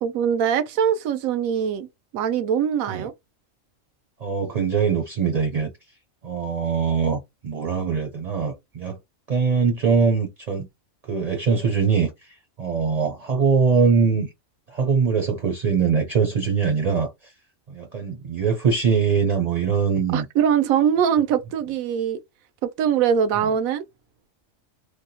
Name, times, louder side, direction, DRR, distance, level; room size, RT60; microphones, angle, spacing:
voice 1, 0.0-1.9 2.1-3.1 20.1-22.2 22.6-23.8, right 8 dB, 85° right, 1.0 m, -22 dB
voice 2, 4.2-5.7 6.2-9.0 9.3-10.7 11.1-14.3 14.7-17.3 17.7-20.3, right 5 dB, 40° right, 0.6 m, -22 dB
3.4 x 2.2 x 2.8 m
omnidirectional pair, 1.4 m